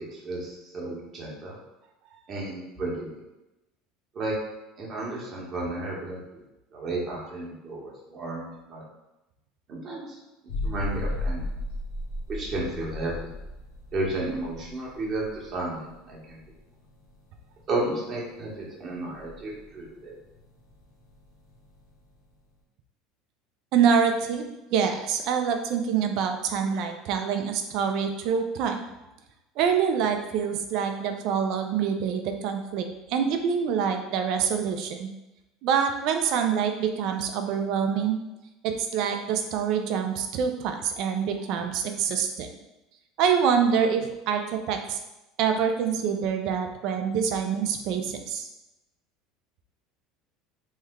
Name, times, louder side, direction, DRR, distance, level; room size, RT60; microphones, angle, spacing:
voice 1, 0.0-1.6 2.3-3.1 4.1-4.3 4.8-6.2 6.7-8.8 9.7-10.2 10.6-11.5 12.3-13.3 13.9-16.4 17.7-20.1, right 2 dB, 40° right, -4 dB, 1.1 m, -33 dB
sound 1, 10.5-22.1, left 2 dB, 60° left, 1.0 m, -36 dB
voice 2, 23.7-28.9 29.6-35.1 35.6-38.2 38.6-42.5 43.2-45.0 45.4-48.5, right 7 dB, 60° right, 6 dB, 0.4 m, -26 dB
3.2 x 2.1 x 3.6 m, 0.96 s
supercardioid pair, 105°, 0 cm